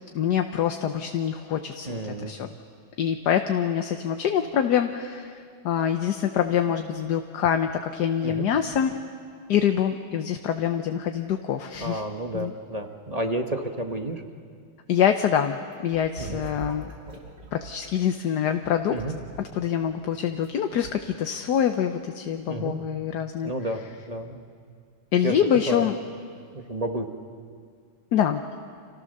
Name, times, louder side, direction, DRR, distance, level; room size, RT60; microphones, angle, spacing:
voice 1, 0.1-2.5 3.0-9.0 9.5-12.0 12.3-12.5 14.9-16.9 17.5-19.0 19.4-23.5 25.1-26.0 28.1-28.4, left 9 dB, 60° left, 6 dB, 1.3 m, -25 dB
voice 2, 1.8-2.3 8.2-8.5 11.8-14.2 16.2-16.4 18.9-19.1 22.5-22.8 23.4-24.4 25.2-25.4 25.7-25.9 26.5-27.1, right 1 dB, 25° right, 5 dB, 1.1 m, -31 dB
sound 1, 15.7-17.8 18.6-20.5 20.8-20.9, right 4 dB, 50° right, 3.4 m, -42 dB
30.0 x 27.5 x 6.7 m, 2.1 s
omnidirectional pair, 2.3 m